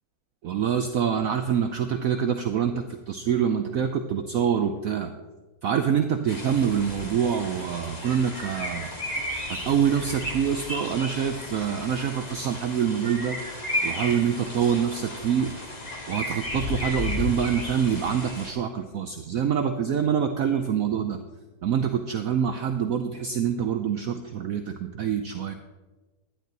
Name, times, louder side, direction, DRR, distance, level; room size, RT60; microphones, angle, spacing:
voice 1, 0.4-5.1 5.6-8.9 9.5-13.4 13.8-15.5 16.1-21.2 21.6-25.5, right 8 dB, 65° right, 7 dB, 0.9 m, -25 dB
sound 1, 6.3-18.5, left 1 dB, 25° left, 1.6 m, -34 dB
12.0 x 10.0 x 4.0 m, 1.2 s
omnidirectional pair, 1.9 m